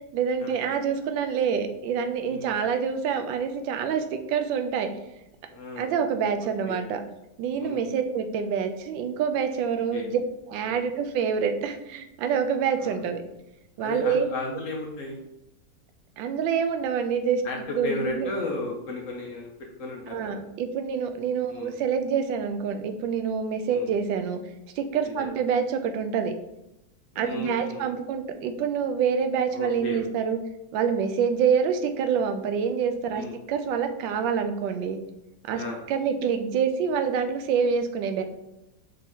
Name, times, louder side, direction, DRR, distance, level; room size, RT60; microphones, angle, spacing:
voice 1, 0.1-4.9 5.8-7.0 7.4-10.2 10.5-13.2 13.8-14.3 16.2-17.4 17.8-18.3 20.1-24.4 24.8-26.3 27.2-30.4 30.7-35.0 35.4-38.2, right 7 dB, 80° right, 7 dB, 1.3 m, -26 dB
voice 2, 2.2-2.6 5.5-5.9 6.7-6.8 7.6-7.8 9.9-10.1 10.7-10.8 12.8-13.0 13.8-15.2 17.4-17.6 17.8-19.5 19.8-20.4 21.5-21.7 23.7-23.9 25.0-25.3 27.1-27.9 29.5-30.0 33.1-33.3 35.5-35.8, left 3 dB, 65° left, 0 dB, 0.8 m, -34 dB
5.1 x 2.8 x 3.6 m, 0.89 s
omnidirectional pair, 2.0 m